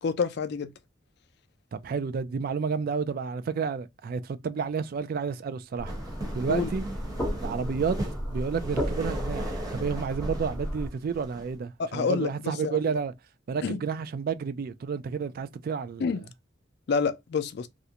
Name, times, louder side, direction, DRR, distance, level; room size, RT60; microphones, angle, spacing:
voice 1, 0.0-0.7 6.5-6.7 11.8-12.8 13.6-13.8 16.0-16.2 16.9-17.7, left 5 dB, 60° left, 0.4 m, -28 dB
voice 2, 1.7-5.9 6.3-6.8 7.4-8.0 8.3-13.1 13.5-16.1, right 6 dB, 50° right, 0.3 m, -30 dB
sound 1, 5.8-10.9, equal, 10° left, 0.9 m, -33 dB
sound 2, 5.8-11.5, right 1 dB, 20° right, 1.0 m, -38 dB
2.4 x 2.1 x 2.7 m
head